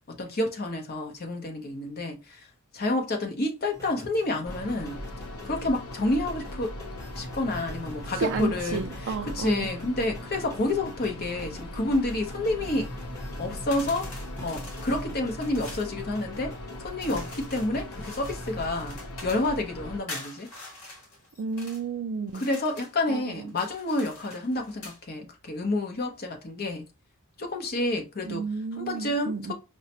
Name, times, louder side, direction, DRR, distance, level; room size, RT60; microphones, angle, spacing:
voice 1, 0.1-2.4 2.7-5.0 5.4-6.7 7.2-12.9 13.4-14.1 14.4-20.5 22.3-26.8 27.4-28.4 28.8-29.5, left 2 dB, 45° left, 0.8 m, -29 dB
sound 1, 3.7-18.7, left 1 dB, 15° left, 1.1 m, -46 dB
sound 2, 4.5-20.0, left 1 dB, 85° left, 0.7 m, -39 dB
voice 2, 8.2-9.7 21.4-22.5 23.1-23.2 28.3-29.5, right 4 dB, 55° right, 0.3 m, -32 dB
sound 3, 13.7-15.9 17.0-19.6 20.1-21.8 22.3-23.0 23.5-25.0, left 2 dB, 65° left, 1.2 m, -44 dB
4.7 x 2.1 x 2.8 m
head